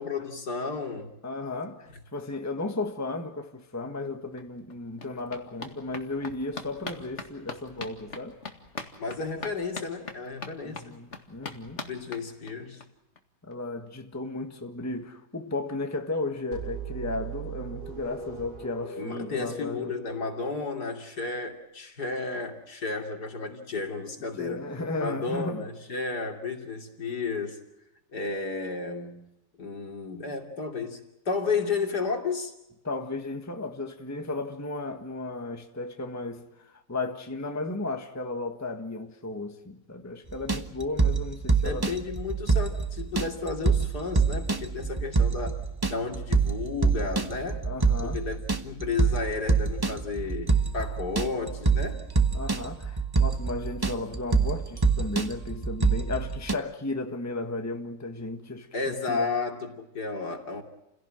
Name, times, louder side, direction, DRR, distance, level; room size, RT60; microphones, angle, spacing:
voice 1, 0.0-1.1 7.0-7.1 9.0-11.0 11.8-12.8 19.0-27.6 28.1-29.2 29.6-32.5 41.6-47.7 48.0-52.0 58.7-60.6, left 4 dB, 65° left, 3.4 m, -33 dB
voice 2, 1.2-8.4 10.6-11.8 13.5-20.0 24.4-25.7 32.8-41.9 47.6-48.2 52.3-59.3, left 2 dB, 10° left, 1.5 m, -34 dB
sound 1, 4.0-4.1 4.4-12.8 13.2-13.3 13.5-13.6 13.9-14.0, left 4 dB, 40° left, 2.2 m, -42 dB
sound 2, 16.5-21.3, right 5 dB, 85° right, 7.7 m, -39 dB
sound 3, 40.3-56.5, right 4 dB, 15° right, 1.0 m, -26 dB
29.5 x 17.0 x 7.7 m
omnidirectional pair, 1.9 m